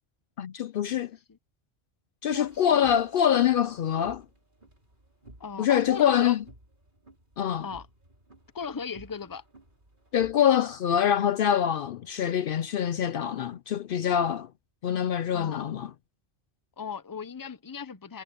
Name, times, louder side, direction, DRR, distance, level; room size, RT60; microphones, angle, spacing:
voice 1, 0.4-1.1 2.2-4.2 5.6-6.4 7.4-7.6 10.1-14.5 14.8-15.9, left 9 dB, 65° left, 0.7 m, -25 dB
voice 2, 1.0-1.4 2.3-3.0 5.4-6.4 7.6-7.9 8.5-9.4 15.3-15.6 16.8-18.2, left 6 dB, 25° left, 0.7 m, -37 dB
sound 1, 2.3-10.4, right 1 dB, 55° right, 5.5 m, -55 dB
omnidirectional pair, 1.0 m